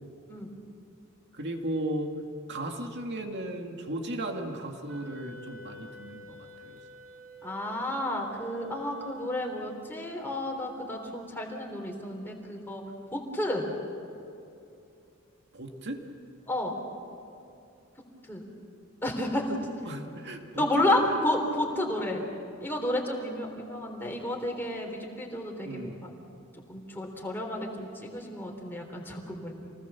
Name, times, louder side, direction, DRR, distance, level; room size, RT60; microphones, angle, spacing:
voice 1, 1.3-2.1 2.5-6.8 15.5-16.0 19.8-21.0 25.6-26.0, right 1 dB, 55° right, 3 dB, 2.2 m, -35 dB
Wind instrument woodwind instrument, 4.9-10.1, left 1 dB, 70° right, 4.9 m, -50 dB
voice 2, 7.4-12.8 13.1-13.7 16.5-16.7 18.2-18.5 19.0-19.6 20.5-22.2 22.6-26.1 26.7-29.5, left 1 dB, 10° left, 0 dB, 3.6 m, -31 dB
28.0 x 19.5 x 7.1 m, 2.7 s
head